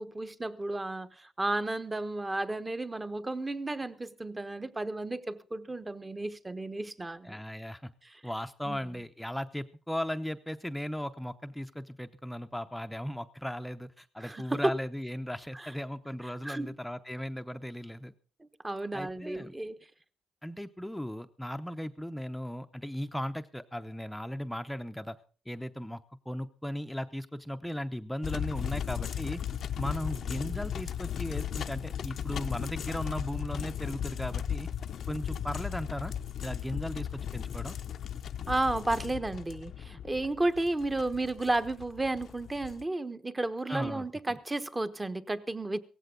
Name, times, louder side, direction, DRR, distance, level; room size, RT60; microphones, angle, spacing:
voice 1, 0.0-7.4 8.0-8.2 8.7-8.8 14.2-14.7 15.5-15.7 16.4-16.8 18.4-19.8 38.5-45.8, right 2 dB, 15° right, 1.1 m, -33 dB
voice 2, 7.2-7.9 8.2-18.1 18.9-19.6 20.4-25.2 25.5-29.4 29.8-34.7 35.1-36.1 36.4-37.7 43.7-44.4, equal, 5° left, 0.8 m, -37 dB
sound 1, 28.2-42.8, left 9 dB, 65° left, 0.7 m, -36 dB
17.0 x 15.0 x 3.9 m
cardioid pair, 90°, 0 cm